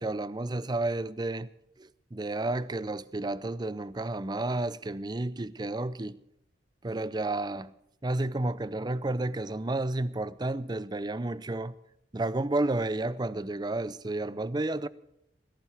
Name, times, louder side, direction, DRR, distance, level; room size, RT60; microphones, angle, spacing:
voice 1, 0.0-1.5 1.8-6.2 6.8-7.7 8.0-11.8 12.1-14.9, right 2 dB, 25° right, 0.5 m, -31 dB
17.5 x 16.0 x 3.5 m
head